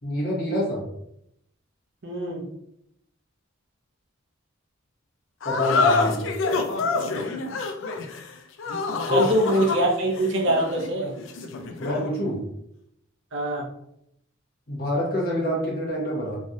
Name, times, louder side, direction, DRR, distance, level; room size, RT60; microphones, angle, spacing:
voice 1, 0.0-0.8 5.4-6.3 9.1-9.4 11.8-12.4 14.7-16.4, left 1 dB, 50° left, -4 dB, 1.1 m, -26 dB
voice 2, 2.0-2.4 9.1-11.1 13.3-13.7, right 1 dB, 60° right, 0 dB, 0.7 m, -23 dB
sound 1, 5.4-12.1, left 3 dB, 65° left, 0.4 m, -27 dB
3.2 x 2.5 x 2.6 m, 0.76 s
head